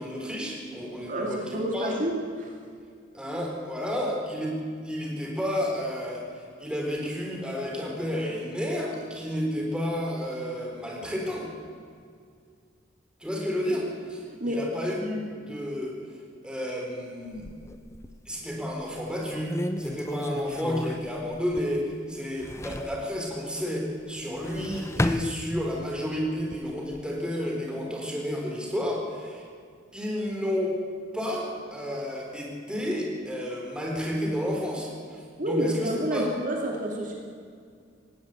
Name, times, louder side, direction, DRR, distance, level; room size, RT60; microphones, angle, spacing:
voice 1, 0.0-2.0 3.1-4.5 4.8-11.5 13.2-16.0 16.4-17.5 18.3-29.5 29.9-30.7 31.1-36.3, equal, 5° right, -1 dB, 4.3 m, -31 dB
voice 2, 1.1-2.5 14.4-14.6 35.4-37.1, right 1 dB, 45° right, 0 dB, 2.6 m, -29 dB
sound 1, 17.3-18.3 18.8-18.9 19.3-21.9 22.2-23.0 24.2-25.9 26.4-27.0, left 1 dB, 15° left, 0.7 m, -33 dB
19.5 x 16.5 x 8.1 m, 2.2 s
head